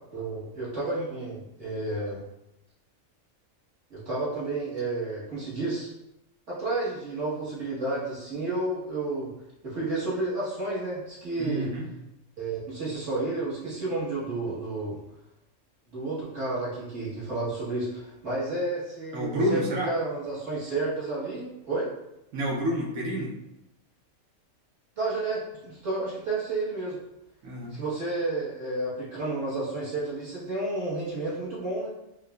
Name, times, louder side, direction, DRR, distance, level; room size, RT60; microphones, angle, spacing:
voice 1, 0.1-2.2 3.9-5.9 6.5-9.3 9.6-11.7 12.4-15.0 15.9-21.9 25.0-27.0 27.7-31.9, right 2 dB, 60° right, -8 dB, 1.5 m, -31 dB
voice 2, 11.4-11.9 19.1-19.9 22.3-23.3 27.4-27.8, equal, 90° right, -3 dB, 1.2 m, -29 dB
4.6 x 2.2 x 2.2 m, 0.86 s
omnidirectional pair, 1.4 m